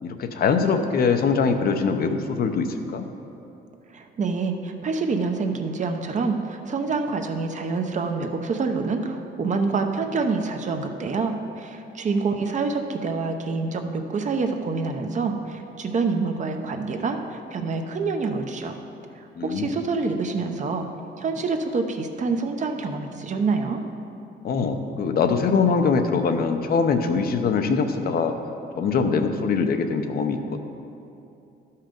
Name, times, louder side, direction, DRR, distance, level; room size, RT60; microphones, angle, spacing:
voice 1, 0.0-3.1 19.3-19.7 24.4-28.4 28.8-30.6, left 5 dB, 55° left, 6 dB, 0.7 m, -23 dB
voice 2, 3.9-18.8 19.2-20.9 21.2-23.8, right 4 dB, 40° right, 5 dB, 0.8 m, -26 dB
12.0 x 5.7 x 5.1 m, 2.8 s
cardioid pair, 110°, 19 cm